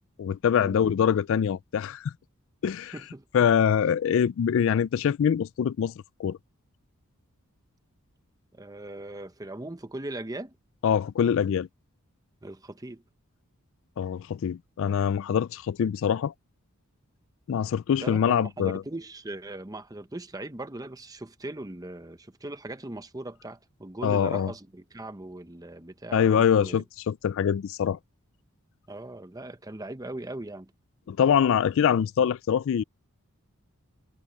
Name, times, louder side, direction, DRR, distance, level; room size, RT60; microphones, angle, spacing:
voice 1, 0.2-2.1 2.6-2.9 3.3-5.9 6.2-6.4 10.8-11.7 14.0-16.3 17.5-18.8 24.0-24.5 26.1-28.0 31.1-32.8, left 8 dB, 60° left, 0.3 m, -24 dB
voice 2, 2.9-3.2 8.5-10.5 12.4-13.0 18.0-26.8 28.9-30.7, right 2 dB, 15° right, 0.8 m, -39 dB
head